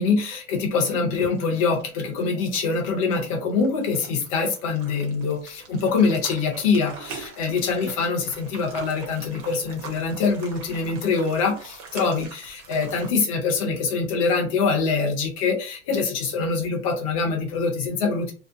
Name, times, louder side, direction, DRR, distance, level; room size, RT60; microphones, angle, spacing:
voice 1, 0.0-18.3, left 4 dB, 25° left, 1 dB, 0.4 m, -24 dB
sound 1, 1.1-13.1, right 4 dB, 35° right, 0.7 m, -43 dB
2.7 x 2.1 x 3.4 m, 0.37 s
supercardioid pair, 165°, 46 cm